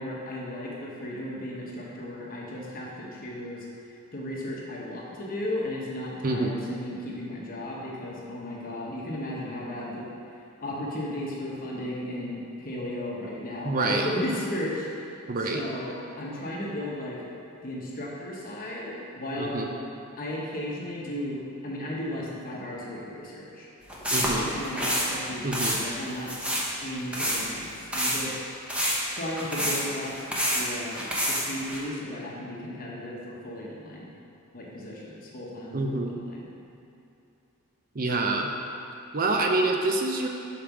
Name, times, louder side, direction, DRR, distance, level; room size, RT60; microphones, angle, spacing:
voice 1, 0.0-3.7 4.1-10.1 10.6-15.1 15.5-17.2 17.6-19.7 20.2-23.7 24.2-26.3 26.8-28.4 29.1-30.3 30.5-34.1 34.5-36.5, left 1 dB, 40° left, -4 dB, 1.0 m, -35 dB
voice 2, 6.2-6.5 13.6-14.1 15.3-15.6 19.4-19.7 24.1-24.5 25.4-25.8 35.7-36.1 37.9-38.5 39.1-40.3, right 2 dB, 40° right, 2 dB, 0.6 m, -26 dB
sound 1, 23.9-25.1 25.5-25.8 26.3-26.7 27.1-27.4 27.9-28.2 28.7-30.6 30.9-31.8, equal, 5° right, 0.9 m, -27 dB
5.3 x 4.9 x 5.9 m, 2.8 s
head